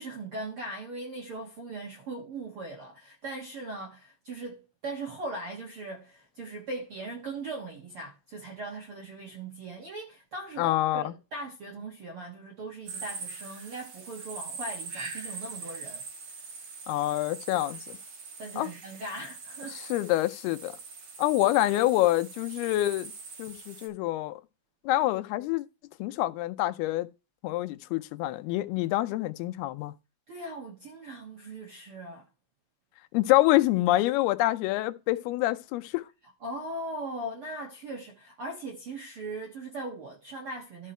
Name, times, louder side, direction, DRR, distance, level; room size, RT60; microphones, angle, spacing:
voice 1, 0.0-16.0 18.4-19.8 30.3-32.3 36.4-40.9, right 2 dB, 75° right, 1.2 m, -39 dB
voice 2, 10.6-11.1 16.9-18.0 18.6-18.7 19.7-20.8 21.2-23.1 23.4-24.4 24.8-25.7 26.0-27.1 27.4-29.9 33.1-36.1, left 16 dB, 80° left, 2.6 m, -26 dB
sound 1, 12.9-23.9, right 4 dB, 50° right, 1.8 m, -42 dB
13.0 x 4.6 x 4.4 m
omnidirectional pair, 4.6 m